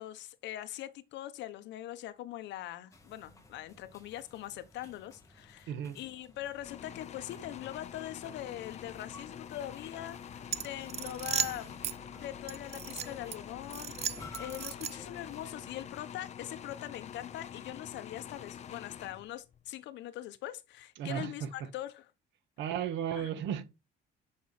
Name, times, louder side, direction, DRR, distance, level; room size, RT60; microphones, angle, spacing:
voice 1, 0.0-11.7 12.1-22.0 23.2-23.3, left 13 dB, 75° left, 1.2 m, -42 dB
sound 1, 2.9-15.9, left 2 dB, 15° left, 2.4 m, -54 dB
voice 2, 5.7-6.0 21.0-21.7 22.6-23.6, right 9 dB, 75° right, 1.8 m, -35 dB
sound 2, 6.6-19.6, left 8 dB, 35° left, 0.8 m, -46 dB
sound 3, 10.5-12.0 12.5-13.4 13.7-15.2, right 8 dB, 35° right, 0.6 m, -36 dB
9.2 x 6.3 x 4.3 m
cardioid pair, 155°, 19 cm